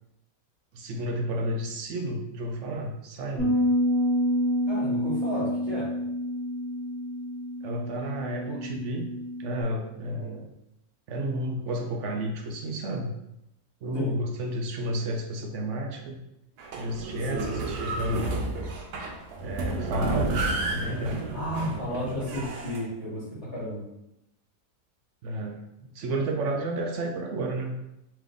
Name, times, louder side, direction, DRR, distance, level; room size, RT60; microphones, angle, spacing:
voice 1, 0.7-3.6 7.6-9.1 9.4-10.5 11.1-13.1 13.8-16.2 16.8-18.4 19.4-22.0 25.2-27.7, right 1 dB, 65° right, 2 dB, 0.8 m, -32 dB
Bass guitar, 3.4-9.6, equal, 15° left, 1.4 m, -28 dB
voice 2, 4.7-5.9 10.2-10.4 13.9-14.1 17.3-17.4 21.3-23.8, left 1 dB, 50° left, -9 dB, 1.8 m, -33 dB
sound 1, 16.6-22.8, right 2 dB, 90° right, 1.2 m, -31 dB
3.6 x 3.2 x 3.5 m, 0.85 s
omnidirectional pair, 1.6 m